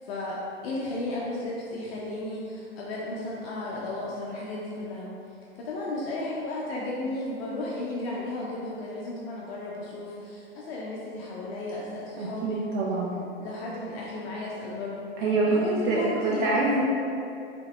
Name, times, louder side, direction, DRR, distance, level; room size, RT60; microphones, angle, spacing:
voice 1, 0.0-12.7 13.1-15.1 15.5-16.5, left 2 dB, 70° left, -5 dB, 0.5 m, -34 dB
voice 2, 12.2-13.1 15.2-16.8, right 3 dB, 55° right, -5 dB, 0.5 m, -25 dB
3.4 x 2.0 x 2.4 m, 2.6 s
hypercardioid pair, 120°, 32 cm